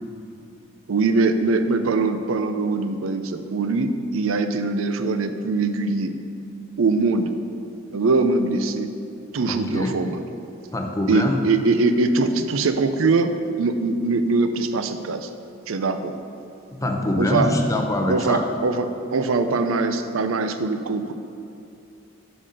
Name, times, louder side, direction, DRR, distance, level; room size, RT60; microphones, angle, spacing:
voice 1, 0.9-6.1 6.8-7.3 7.9-8.9 9.3-10.2 11.1-15.3 15.7-16.1 17.2-17.5 18.1-21.1, right 3 dB, 75° right, 8 dB, 0.5 m, -22 dB
voice 2, 9.5-10.0 10.7-11.4 16.7-18.5, left 1 dB, 15° left, 2 dB, 0.6 m, -24 dB
7.5 x 4.1 x 6.4 m, 2.7 s
head